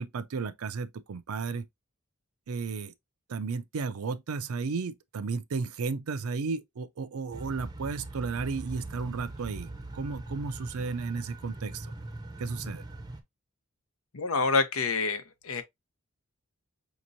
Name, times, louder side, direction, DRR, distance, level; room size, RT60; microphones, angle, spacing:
voice 1, 0.0-1.7 2.5-2.9 3.3-11.9 12.4-12.9, right 4 dB, 80° right, 0.5 m, -34 dB
sound 1, 7.3-13.2, right 2 dB, 20° right, 0.6 m, -41 dB
voice 2, 14.1-15.6, left 4 dB, 80° left, 0.8 m, -27 dB
5.2 x 2.9 x 2.6 m
head